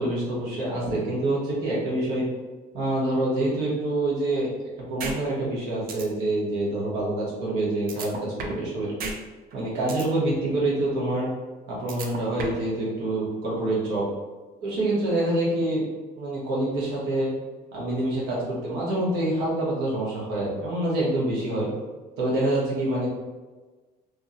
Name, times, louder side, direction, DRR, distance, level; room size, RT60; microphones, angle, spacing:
voice 1, 0.0-2.2 2.7-4.5 4.9-8.9 9.5-11.3 11.7-14.1 14.6-15.8 16.2-17.3 17.7-21.7 22.2-23.1, right 1 dB, 90° right, -6 dB, 1.3 m, -26 dB
sound 1, 5.0-5.2 5.5-5.6 5.9-6.0 7.9-8.7 9.0-9.2 9.5-10.1 11.9-12.7, right 4 dB, 60° right, 0.5 m, -33 dB
2.8 x 2.8 x 2.6 m, 1.3 s
cardioid pair, 110°, 17 cm